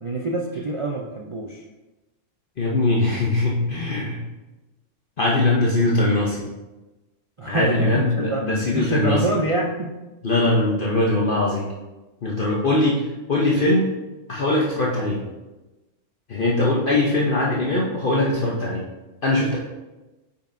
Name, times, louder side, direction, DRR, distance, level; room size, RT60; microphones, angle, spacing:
voice 1, 0.0-1.7 7.4-8.0 8.3-10.0, right 2 dB, 50° right, -1 dB, 0.3 m, -26 dB
voice 2, 2.6-4.2 5.2-6.4 7.5-9.2 10.2-11.7 12.2-13.9 14.3-15.2 16.3-18.8 19.2-19.6, left 2 dB, 50° left, -4 dB, 1.0 m, -21 dB
8.9 x 5.5 x 2.6 m, 1.1 s
omnidirectional pair, 1.3 m